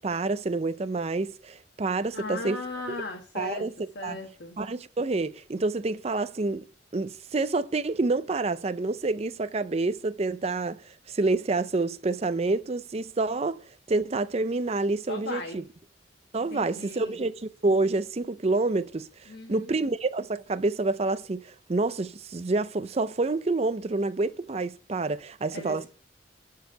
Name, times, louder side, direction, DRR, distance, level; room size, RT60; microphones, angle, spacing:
voice 1, 0.0-2.6 3.4-3.7 4.0-4.2 4.6-6.7 6.9-13.6 13.9-15.6 16.3-17.3 17.6-19.1 19.5-25.9, right 3 dB, 35° right, 0.5 m, -28 dB
voice 2, 2.1-3.7 3.9-4.6 15.1-15.7 16.5-17.2 19.3-19.7 25.5-25.9, left 2 dB, 70° left, 1.6 m, -37 dB
11.0 x 4.7 x 6.6 m
head